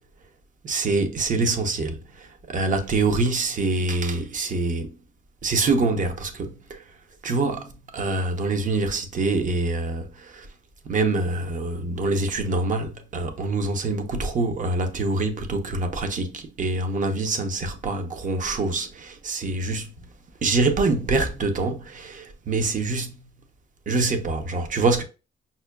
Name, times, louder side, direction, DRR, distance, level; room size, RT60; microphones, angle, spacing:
voice 1, 0.6-4.9 5.4-6.8 7.2-10.5 10.8-19.9 20.4-23.2 23.9-25.0, right 3 dB, 40° right, 0.6 m, -25 dB
5.5 x 2.2 x 2.2 m
cardioid pair, 115°, 21 cm